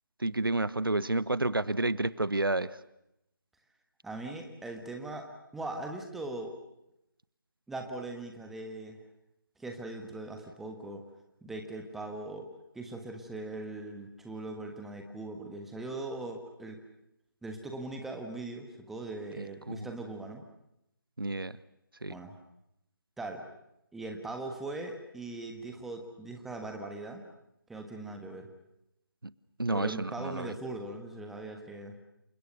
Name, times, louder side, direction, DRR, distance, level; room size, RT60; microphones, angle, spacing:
voice 1, 0.2-2.8 19.4-19.9 21.2-21.6 22.0-22.1 29.6-30.5, right 2 dB, 75° right, 18 dB, 1.1 m, -30 dB
voice 2, 4.0-6.5 7.7-9.0 9.6-11.0 11.4-12.5 12.7-16.8 17.4-20.4 22.1-22.4 23.2-23.4 23.9-27.2 27.7-28.5 29.7-31.9, right 2 dB, ahead, 4 dB, 1.5 m, -40 dB
29.0 x 24.5 x 6.7 m, 0.82 s
figure-of-eight pair, 155°, 12 cm